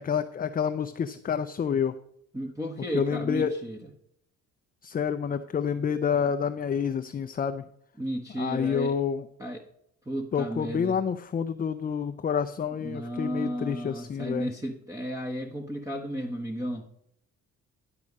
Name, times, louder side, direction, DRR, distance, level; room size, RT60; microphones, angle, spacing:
voice 1, 0.0-1.9 2.9-3.5 4.8-7.6 8.4-9.3 10.3-14.5, left 7 dB, 30° left, 8 dB, 0.5 m, -28 dB
voice 2, 2.3-3.8 8.0-9.0 9.4-9.6 10.1-11.0 12.8-17.0, equal, 10° right, 2 dB, 1.0 m, -33 dB
11.5 x 4.8 x 5.3 m, 0.75 s
cardioid pair, 90°, 30 cm